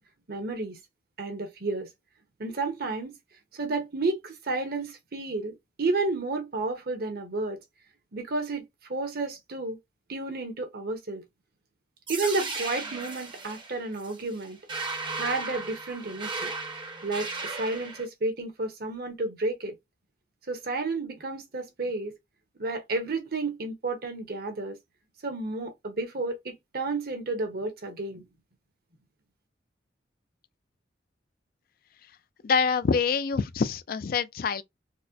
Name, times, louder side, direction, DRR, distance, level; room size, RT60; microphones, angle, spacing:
voice 1, 0.3-0.8 1.2-1.9 2.4-3.2 3.5-7.6 8.1-8.6 8.9-9.8 10.1-11.2 12.1-14.6 15.1-16.5 17.0-19.8 20.5-22.1 22.6-24.8 25.2-28.2, right 3 dB, 55° right, 0.9 m, -31 dB
sound 1, 12.1-18.1, right 3 dB, 25° right, 0.7 m, -36 dB
voice 2, 32.4-34.6, left 5 dB, 50° left, 0.3 m, -25 dB
4.1 x 2.1 x 2.6 m
head